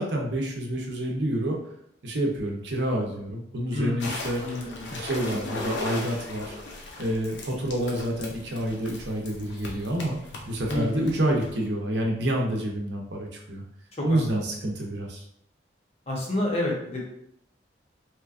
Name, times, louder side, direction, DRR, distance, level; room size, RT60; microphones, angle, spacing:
voice 1, 0.0-1.6 2.0-4.4 4.9-6.6 7.0-10.2 10.5-13.6 14.0-15.2, right 1 dB, 70° right, 0 dB, 0.7 m, -28 dB
voice 2, 3.7-4.2 4.4-4.9 10.7-11.1 14.0-14.1 16.1-17.0, left 1 dB, 35° left, -2 dB, 0.9 m, -29 dB
sound 1, 4.0-11.7, left 2 dB, 85° left, 0.6 m, -38 dB
3.4 x 3.0 x 2.4 m, 0.73 s
head